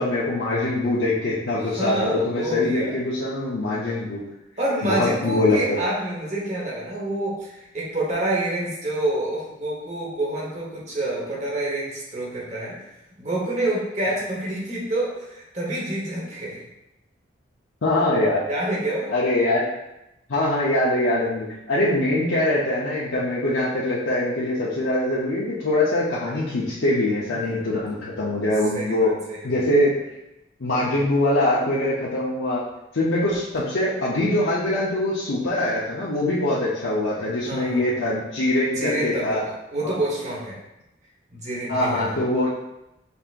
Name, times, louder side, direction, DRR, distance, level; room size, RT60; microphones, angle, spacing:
voice 1, 0.0-4.2 4.8-5.8 17.8-18.4 19.1-19.6 20.3-29.1 29.4-29.9 30.6-32.6 32.9-39.4 39.8-40.0 41.7-42.6, left 1 dB, 85° left, -8 dB, 0.8 m, -23 dB
voice 2, 1.6-3.0 4.6-12.8 13.2-16.7 18.5-19.1 27.3-27.8 28.7-29.6 37.5-38.0 38.7-40.6 41.3-42.2, right 1 dB, 35° right, -4 dB, 1.2 m, -28 dB
5.4 x 3.5 x 2.5 m, 0.91 s
head